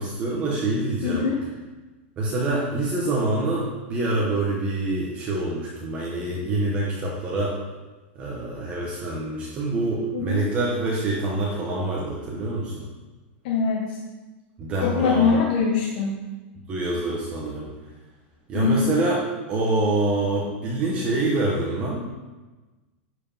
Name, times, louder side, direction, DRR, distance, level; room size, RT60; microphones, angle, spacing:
voice 1, 0.0-1.2 2.2-7.5 8.1-12.9 14.6-15.4 16.7-17.7 18.5-19.2 19.5-22.0, right 2 dB, 20° right, -4 dB, 1.2 m, -26 dB
voice 2, 1.0-1.4 10.1-10.4 13.4-14.0 14.8-16.2 18.5-18.9, left 5 dB, 45° left, -2 dB, 1.2 m, -23 dB
11.0 x 4.8 x 5.7 m, 1.2 s
supercardioid pair, 175°, 7 cm